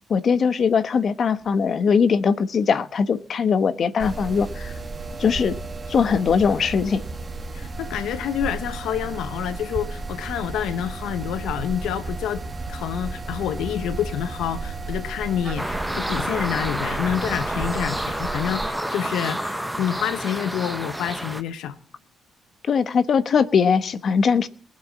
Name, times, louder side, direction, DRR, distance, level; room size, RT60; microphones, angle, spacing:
voice 1, 0.1-4.7 5.2-5.5 5.9-7.0 22.6-24.5, left 6 dB, 50° left, 1.1 m, -20 dB
sound 1, 4.0-18.7, right 3 dB, 30° right, 1.8 m, -33 dB
voice 2, 7.5-12.4 12.7-21.8, left 10 dB, 85° left, 1.1 m, -28 dB
sound 2, 15.6-21.4, right 1 dB, 5° right, 1.1 m, -29 dB
19.5 x 8.1 x 7.3 m
cardioid pair, 90°, 0 cm